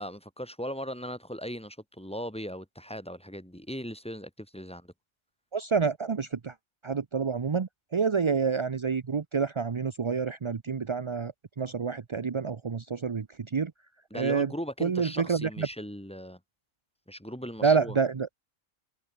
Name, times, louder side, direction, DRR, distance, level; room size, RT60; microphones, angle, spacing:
voice 1, 0.0-4.9 14.1-16.4 17.1-18.0, equal, 5° left, 2.5 m, -38 dB
voice 2, 5.5-6.5 6.8-11.3 11.6-13.3 13.5-13.7 14.1-14.5 14.8-15.7 17.6-18.3, right 5 dB, 40° right, 0.4 m, -28 dB
omnidirectional pair, 1.4 m